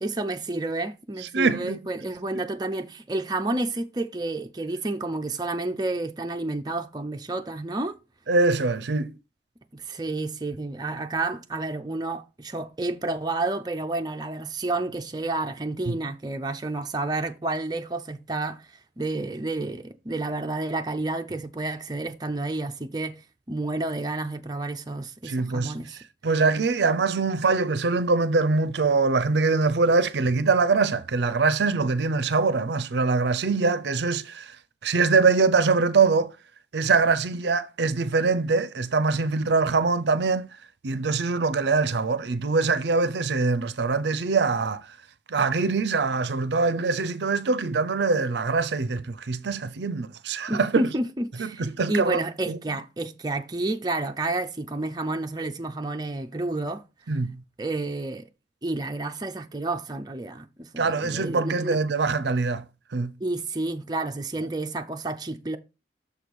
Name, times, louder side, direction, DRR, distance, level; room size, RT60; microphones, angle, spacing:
voice 1, 0.0-8.0 9.7-18.6 19.0-23.2 23.5-26.0 50.5-56.8 57.6-58.3 58.6-61.8 63.2-65.6, right 2 dB, 20° right, 0.5 m, -30 dB
voice 2, 1.3-1.8 8.3-9.1 15.9-16.0 25.2-25.8 26.2-34.6 34.8-36.3 36.7-40.5 40.8-45.0 45.3-50.8 51.4-52.2 52.5-52.6 57.1-57.4 60.8-62.6 62.9-63.1, right 4 dB, 65° right, 0.5 m, -23 dB
6.6 x 4.7 x 5.3 m
head